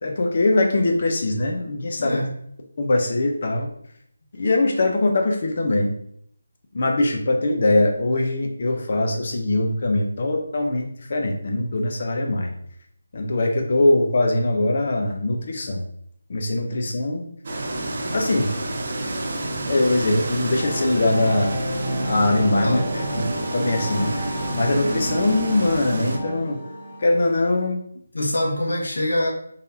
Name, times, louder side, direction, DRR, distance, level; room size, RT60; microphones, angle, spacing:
voice 1, 0.0-2.2 2.8-3.7 4.3-5.9 6.7-12.5 13.1-15.8 16.3-17.3 18.1-18.5 19.7-21.5 22.0-22.8 23.1-23.2 23.5-26.6 27.0-27.8, left 2 dB, 35° left, 2 dB, 0.6 m, -22 dB
voice 2, 1.9-2.3 17.6-17.7 22.6-23.3 28.1-29.3, left 1 dB, 90° left, -2 dB, 1.4 m, -25 dB
sound 1, 17.4-26.2, right 2 dB, 30° right, 0.5 m, -29 dB
sound 2, 20.6-27.5, right 1 dB, 10° right, 0.9 m, -31 dB
4.4 x 3.4 x 2.7 m, 0.69 s
figure-of-eight pair, 175°, 0 cm